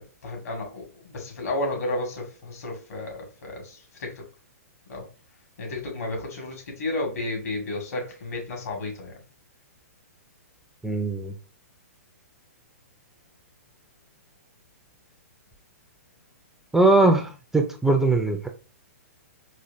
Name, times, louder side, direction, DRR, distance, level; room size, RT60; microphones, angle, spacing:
voice 1, 0.0-4.2 4.9-5.0 5.6-9.1, left 2 dB, 70° left, 1.6 m, -32 dB
voice 2, 10.8-11.3 16.7-18.5, right 2 dB, 5° right, 0.3 m, -20 dB
4.3 x 2.4 x 2.5 m
hypercardioid pair, 130°, 8 cm